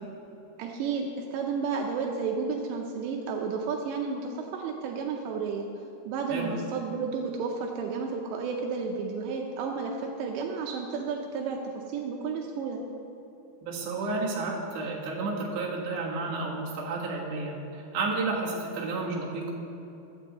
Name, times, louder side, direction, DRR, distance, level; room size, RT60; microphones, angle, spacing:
voice 1, 0.6-5.7 6.1-12.8, right 5 dB, 80° right, 1 dB, 2.9 m, -32 dB
voice 2, 13.6-19.5, right 3 dB, 55° right, -4 dB, 2.6 m, -31 dB
16.0 x 10.5 x 3.0 m, 2.9 s
omnidirectional pair, 5.2 m